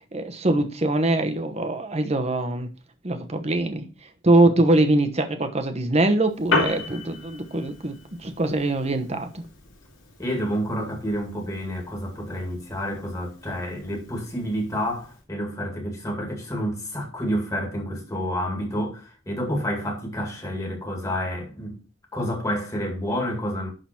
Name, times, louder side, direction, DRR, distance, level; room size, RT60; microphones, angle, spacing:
voice 1, 0.1-2.7 3.0-3.8 4.2-9.4, right 2 dB, 35° right, 1.1 m, -23 dB
Piano, 6.2-15.2, left 2 dB, 90° left, 2.7 m, -34 dB
voice 2, 10.2-21.8 22.1-23.7, equal, 15° left, 2.3 m, -29 dB
11.5 x 4.0 x 4.4 m
head